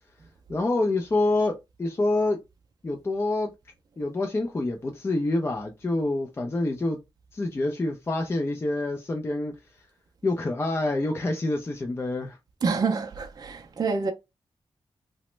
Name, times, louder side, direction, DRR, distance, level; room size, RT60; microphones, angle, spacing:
voice 1, 0.5-2.4 2.8-3.5 4.0-7.0 7.3-9.5 10.2-12.4, left 2 dB, 25° left, 0.4 m, -27 dB
voice 2, 12.6-14.1, right 4 dB, 40° right, 0.4 m, -27 dB
2.9 x 2.0 x 3.1 m
wide cardioid pair, 165°, 10 cm